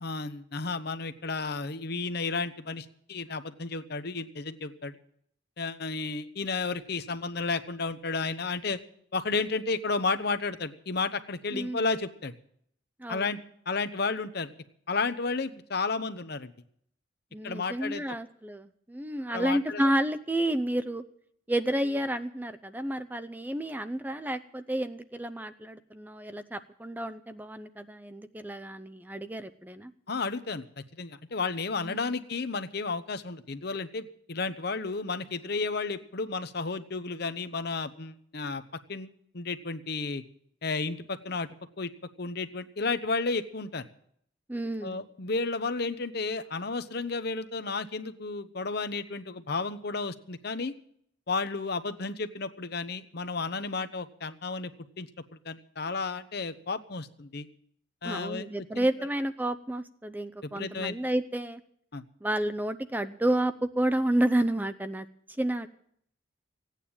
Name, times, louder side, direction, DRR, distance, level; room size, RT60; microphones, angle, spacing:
voice 1, 0.0-5.0 5.6-8.8 9.1-12.3 13.1-13.4 13.7-14.5 14.9-16.5 17.4-18.0 19.3-19.8 30.1-38.6 38.9-40.2 40.6-41.5 41.8-41.9 42.2-43.8 44.8-50.7 51.3-54.7 55.0-55.1 55.4-57.5 58.0-58.5 58.8-58.9 60.6-61.0 61.9-62.0, left 4 dB, 55° left, 11 dB, 0.9 m, -32 dB
voice 2, 11.5-11.8 13.0-13.3 17.3-21.0 21.5-29.9 31.8-32.2 44.5-45.0 58.0-61.6 62.2-65.1 65.4-65.7, right 1 dB, 10° right, 10 dB, 0.5 m, -30 dB
16.0 x 9.2 x 8.7 m, 0.67 s
head